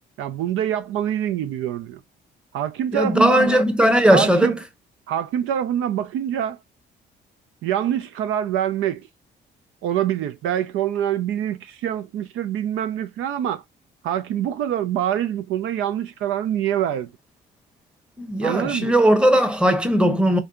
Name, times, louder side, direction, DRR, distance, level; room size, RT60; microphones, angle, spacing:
voice 1, 0.2-2.0 2.5-3.6 4.1-4.6 5.1-6.6 7.6-9.1 9.8-13.6 14.0-17.1 18.4-18.9, right 10 dB, 85° right, 0.4 m, -25 dB
voice 2, 2.9-4.5 18.2-20.4, equal, 5° right, 0.8 m, -18 dB
3.4 x 2.6 x 3.6 m
cardioid pair, 90°, 20 cm